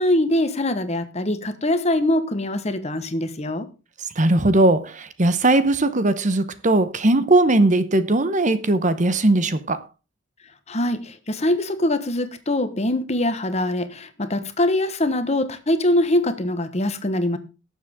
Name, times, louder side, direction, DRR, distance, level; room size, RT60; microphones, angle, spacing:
voice 1, 0.0-3.7 10.7-17.4, left 1 dB, 35° left, 1.3 m, -23 dB
voice 2, 4.1-9.8, right 2 dB, 40° right, 0.9 m, -19 dB
18.5 x 7.4 x 3.7 m
head